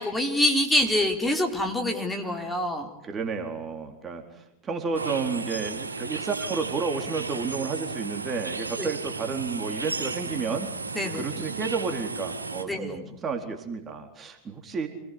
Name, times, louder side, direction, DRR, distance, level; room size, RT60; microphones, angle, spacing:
voice 1, 0.0-2.9 8.8-8.9 10.9-11.2 12.7-13.0, left 1 dB, 5° left, 2 dB, 4.3 m, -25 dB
voice 2, 3.0-10.7 11.1-14.9, right 5 dB, 25° right, 4 dB, 4.1 m, -31 dB
sound 1, 4.9-12.6, right 4 dB, 85° right, 3.2 m, -34 dB
28.5 x 20.5 x 9.8 m, 0.80 s
figure-of-eight pair, 95°, 0 cm